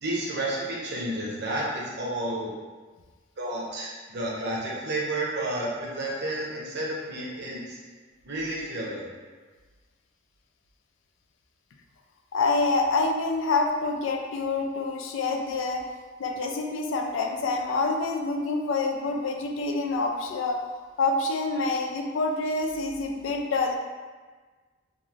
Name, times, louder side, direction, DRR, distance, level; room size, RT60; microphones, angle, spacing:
voice 1, 0.0-2.6 3.4-7.8 8.2-9.1, right 1 dB, 60° right, -4 dB, 0.7 m, -31 dB
voice 2, 12.3-15.8 16.2-20.6 21.0-23.7, left 3 dB, 90° left, 2 dB, 0.4 m, -27 dB
3.0 x 2.5 x 2.4 m, 1.4 s
head